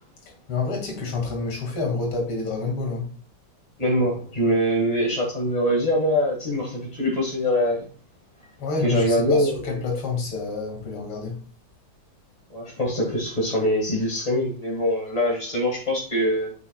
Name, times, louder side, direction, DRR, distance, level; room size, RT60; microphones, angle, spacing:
voice 1, 0.5-3.1 8.6-11.4, left 3 dB, 90° left, 3.1 m, -28 dB
voice 2, 3.8-7.8 8.8-9.7 12.5-16.5, equal, 20° left, 1.6 m, -23 dB
9.7 x 7.1 x 2.3 m
omnidirectional pair, 2.3 m